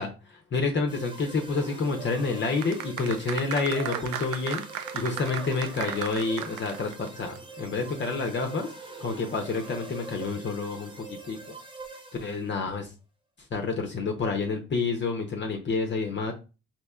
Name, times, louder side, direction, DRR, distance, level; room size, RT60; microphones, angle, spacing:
voice 1, 0.0-8.7 9.0-11.4 12.2-12.9 13.5-16.3, left 4 dB, 40° left, 3 dB, 0.7 m, -29 dB
sound 1, 0.9-12.6, right 2 dB, 15° right, 0.8 m, -44 dB
sound 2, 2.6-7.1 7.4-7.5, right 9 dB, 80° right, 0.5 m, -35 dB
4.2 x 2.9 x 2.3 m, 0.31 s
cardioid pair, 90°, 30 cm